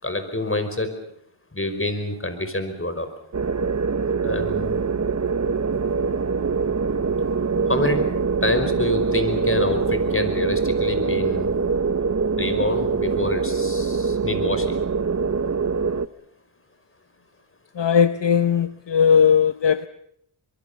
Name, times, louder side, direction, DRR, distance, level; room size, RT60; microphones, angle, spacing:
voice 1, 0.0-0.9 1.5-3.1 4.2-4.7 7.7-8.1 8.4-11.5 12.4-14.8, left 2 dB, 25° left, 9 dB, 5.4 m, -26 dB
sound 1, 3.3-16.1, right 5 dB, 35° right, 0.9 m, -23 dB
voice 2, 17.8-19.9, left 7 dB, 60° left, 13 dB, 0.9 m, -18 dB
24.0 x 23.0 x 7.0 m, 0.73 s
cardioid pair, 50°, 49 cm